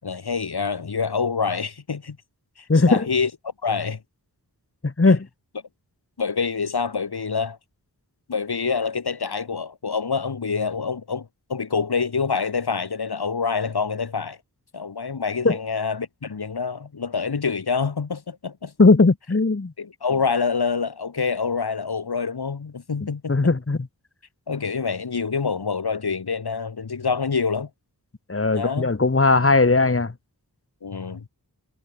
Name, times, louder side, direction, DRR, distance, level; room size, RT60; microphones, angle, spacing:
voice 1, 0.0-2.2 2.6-3.3 3.6-4.0 6.2-7.6 8.3-14.4 14.7-18.7 19.8-23.5 24.5-27.7 28.5-28.9 30.8-31.3, left 5 dB, 85° left, 6.3 m, -26 dB
voice 2, 2.7-3.1 4.8-5.3 15.4-15.6 18.8-19.7 23.3-23.9 28.3-30.1, left 3 dB, 35° left, 2.7 m, -18 dB
wide cardioid pair, 80°, 38 cm